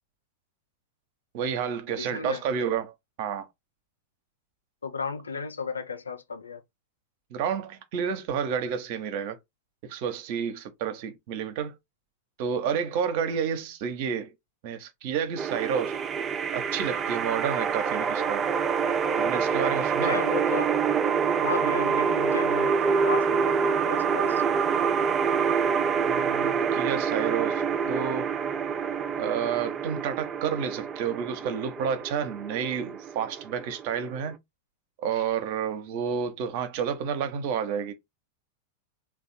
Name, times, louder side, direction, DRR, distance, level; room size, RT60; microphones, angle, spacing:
voice 1, 1.3-3.5 7.3-9.4 9.8-11.7 12.4-14.3 14.6-16.0 16.5-18.5 19.2-20.2 26.0-27.6 27.9-28.3 29.2-34.4 35.0-37.9, right 7 dB, 50° right, 0.8 m, -30 dB
voice 2, 2.0-2.4 4.8-6.6 20.0-20.7 21.3-24.4, left 5 dB, 75° left, 0.6 m, -34 dB
sound 1, 15.4-34.3, right 6 dB, 25° right, 0.4 m, -26 dB
3.4 x 2.3 x 4.0 m
figure-of-eight pair, 90°, 0 cm